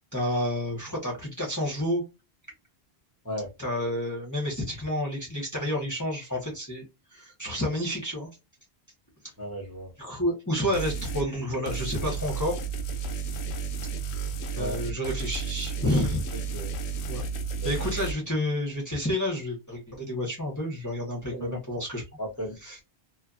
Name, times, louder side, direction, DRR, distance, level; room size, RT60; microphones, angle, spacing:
voice 1, 0.1-2.0 3.6-6.8 7.1-8.3 10.0-12.6 14.5-16.2 17.1-17.2 17.6-22.0 22.6-22.8, left 1 dB, 20° left, 0.9 m, -30 dB
voice 2, 9.4-9.9 14.6-14.8 16.5-16.7 17.6-17.7 21.3-21.6 22.2-22.8, equal, 15° right, 1.0 m, -35 dB
sound 1, 10.7-11.3 11.7-18.1, right 5 dB, 80° left, 0.8 m, -32 dB
2.6 x 2.4 x 2.5 m
omnidirectional pair, 1.1 m